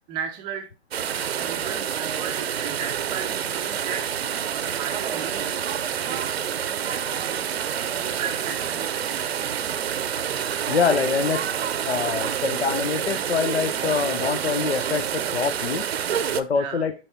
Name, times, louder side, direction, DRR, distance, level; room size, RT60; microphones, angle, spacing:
voice 1, 0.1-0.7 1.3-4.0 4.5-5.5 6.0-6.4 6.9-7.4 7.9-9.6 16.5-16.8, right 8 dB, 15° right, 3 dB, 0.4 m, -36 dB
sound 1, 0.9-16.4, right 9 dB, 70° right, 0.6 m, -28 dB
voice 2, 10.7-11.5 11.9-15.8 16.3-16.9, left 6 dB, 85° left, 10 dB, 0.6 m, -25 dB
10.5 x 4.5 x 2.8 m, 0.32 s
figure-of-eight pair, 120°, 32 cm